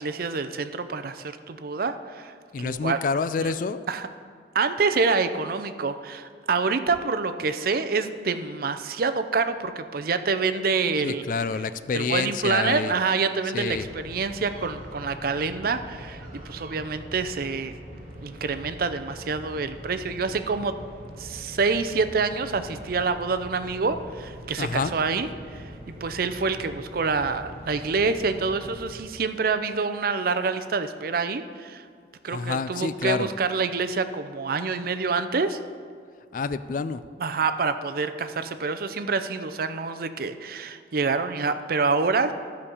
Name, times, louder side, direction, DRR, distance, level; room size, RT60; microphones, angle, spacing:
voice 1, 0.0-3.0 3.4-3.5 3.9-4.1 4.5-11.3 11.9-17.7 18.2-20.7 21.2-31.8 32.2-35.6 37.2-42.3, right 4 dB, 55° right, 10 dB, 0.5 m, -27 dB
voice 2, 2.5-3.8 11.0-13.0 13.4-13.9 24.6-25.0 32.3-33.3 36.3-37.0, left 5 dB, 50° left, 13 dB, 0.3 m, -28 dB
sound 1, 13.7-29.0, equal, 40° right, 3.2 m, -42 dB
12.5 x 5.2 x 7.0 m, 2.1 s
head